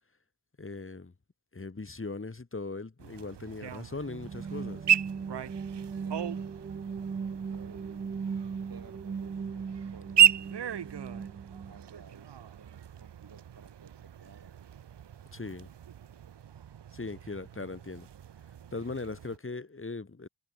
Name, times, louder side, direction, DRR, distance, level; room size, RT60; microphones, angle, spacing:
voice 1, 0.6-1.1 1.5-4.9 15.3-15.7 16.9-18.1 18.7-20.3, left 3 dB, 30° left, 4.2 m, -39 dB
sound 1, 3.0-19.4, right 9 dB, 85° right, 1.1 m, -33 dB
sound 2, 4.0-11.8, right 6 dB, 25° right, 0.4 m, -38 dB
voice 2, 5.9-6.7 7.3-8.1 8.6-11.3 11.7-14.5, right 5 dB, 55° right, 7.4 m, -55 dB
wide cardioid pair, 140°, 41 cm